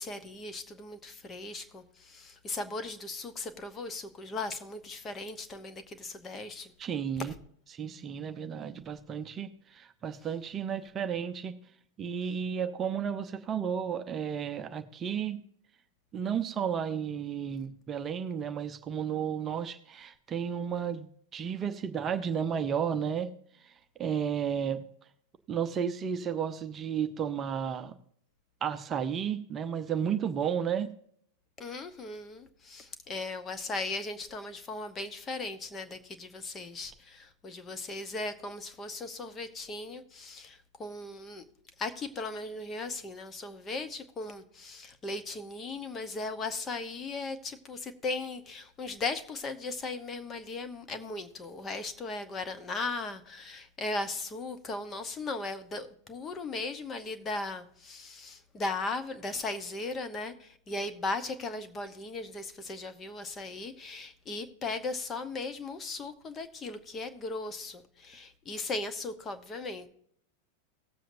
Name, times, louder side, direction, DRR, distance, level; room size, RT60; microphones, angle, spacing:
voice 1, 0.0-6.7 7.2-7.3 31.6-41.4 41.8-69.9, left 3 dB, 20° left, 1.1 m, -37 dB
voice 2, 6.8-7.3 7.7-11.6 12.0-15.4 16.1-23.3 24.0-24.8 25.5-27.9 28.6-30.9, right 8 dB, 25° right, 0.7 m, -33 dB
18.5 x 7.6 x 2.7 m
figure-of-eight pair, 90°, 0 cm